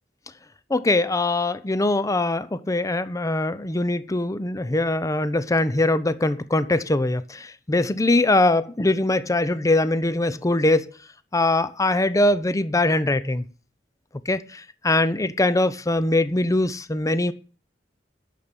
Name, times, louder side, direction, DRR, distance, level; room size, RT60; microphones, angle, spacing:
voice 1, 0.7-10.9 11.3-13.5 14.3-17.3, left 2 dB, 20° left, 0.6 m, -22 dB
10.5 x 6.8 x 9.0 m
head